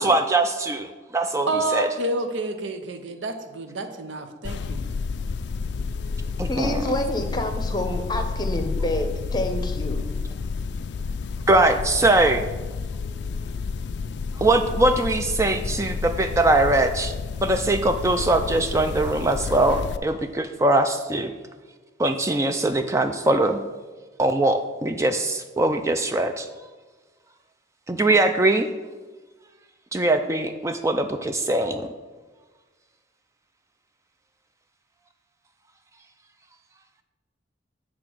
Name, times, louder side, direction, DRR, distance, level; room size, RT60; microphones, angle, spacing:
voice 1, 0.0-1.9 6.4-6.8 11.5-12.4 14.4-17.1 17.4-21.3 22.0-23.6 24.2-26.5 27.9-28.7 29.9-31.9, right 2 dB, 15° right, 7 dB, 0.3 m, -21 dB
voice 2, 1.5-4.8 6.1-6.3, right 2 dB, 80° right, 7 dB, 0.7 m, -29 dB
sound 1, 4.4-20.0, left 4 dB, 65° left, 0.3 m, -30 dB
voice 3, 6.5-10.1, left 1 dB, 20° left, 6 dB, 0.7 m, -28 dB
8.8 x 3.7 x 6.2 m, 1.3 s
head